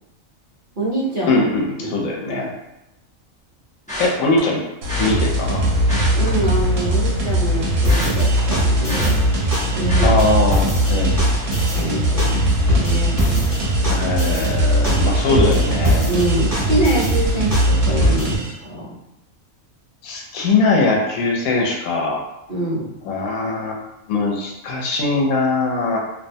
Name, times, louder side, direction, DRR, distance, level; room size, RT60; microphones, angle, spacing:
voice 1, 0.8-1.4 1.8-1.9 2.3-2.5 6.1-9.3 9.7-10.1 11.7-13.4 15.3-15.7 16.1-18.9 22.5-22.9, right 1 dB, 50° right, -7 dB, 0.7 m, -25 dB
voice 2, 1.3-2.5 4.0-4.6 5.0-5.6 10.0-11.2 13.9-16.1 20.0-22.2 23.0-23.8 24.1-26.0, left 3 dB, 90° left, -1 dB, 1.0 m, -21 dB
sound 1, 3.9-4.4 4.9-5.1 5.8-7.0 7.3-9.6 9.9-10.3 10.8-11.0 11.3-11.4, equal, 10° left, 0.5 m, -30 dB
sound 2, 4.8-18.4, right 1 dB, 70° right, 1.0 m, -20 dB
sound 3, 7.8-18.5, left 1 dB, 10° right, 1.1 m, -25 dB
2.5 x 2.1 x 2.6 m, 0.89 s
omnidirectional pair, 1.4 m